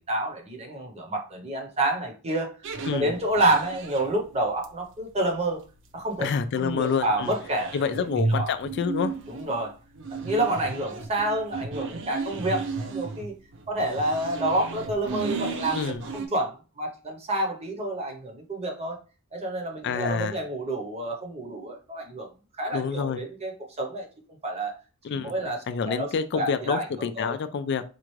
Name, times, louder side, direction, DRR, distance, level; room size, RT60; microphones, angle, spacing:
voice 1, 0.1-2.5 2.9-5.6 5.9-6.3 6.6-8.0 8.3-8.5 9.3-9.7 10.1-13.3 13.7-19.0 19.3-22.3 22.6-24.7 25.1-26.1 26.3-27.4, right 1 dB, 30° right, 2 dB, 0.8 m, -29 dB
sound 1, 2.6-16.3, right 3 dB, 60° right, 0.6 m, -34 dB
voice 2, 6.2-7.3 7.7-9.1 15.7-16.0 19.8-20.4 22.7-23.2 25.0-25.3 25.7-27.8, left 6 dB, 55° left, 11 dB, 0.3 m, -28 dB
4.3 x 2.4 x 3.1 m, 0.34 s
head